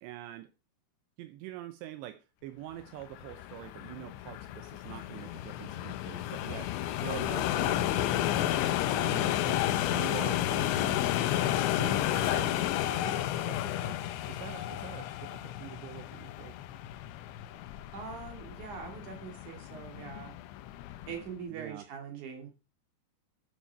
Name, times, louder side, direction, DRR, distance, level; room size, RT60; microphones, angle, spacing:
voice 1, 0.0-0.5 1.2-8.6 8.9-11.0 11.7-16.6 21.5-21.9, right 14 dB, 80° right, 10 dB, 2.8 m, -45 dB
sound 1, 3.0-21.3, left 13 dB, 85° left, 3.1 m, -32 dB
voice 2, 17.9-20.3 21.1-22.5, right 6 dB, 50° right, 4 dB, 3.4 m, -42 dB
12.0 x 7.2 x 4.5 m, 0.30 s
omnidirectional pair, 5.1 m